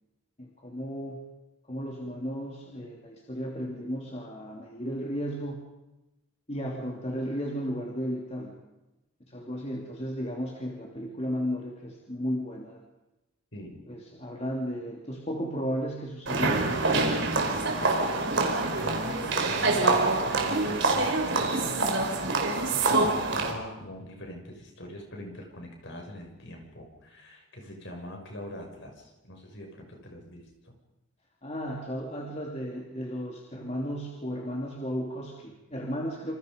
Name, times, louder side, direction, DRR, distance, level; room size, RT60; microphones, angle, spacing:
voice 1, 0.4-1.2 1.7-5.6 6.5-8.6 9.3-12.8 13.9-16.8 31.4-36.4, equal, 30° left, -1 dB, 3.0 m, -34 dB
voice 2, 13.5-13.8 18.8-21.8 22.9-30.7, equal, 55° left, 2 dB, 6.7 m, -42 dB
sound 1, 16.3-23.5, right 3 dB, 55° right, 4.3 m, -26 dB
27.5 x 27.0 x 5.4 m, 0.99 s
head